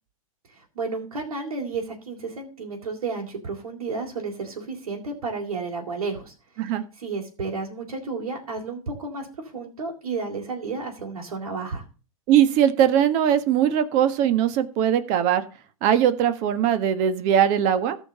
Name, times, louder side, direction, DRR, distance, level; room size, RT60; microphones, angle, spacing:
voice 1, 0.5-11.8, right 4 dB, 85° right, -2 dB, 3.6 m, -32 dB
voice 2, 12.3-15.4 15.8-18.0, right 9 dB, 40° right, 10 dB, 1.6 m, -20 dB
15.0 x 5.5 x 6.7 m, 0.35 s
hypercardioid pair, 125°, 18 cm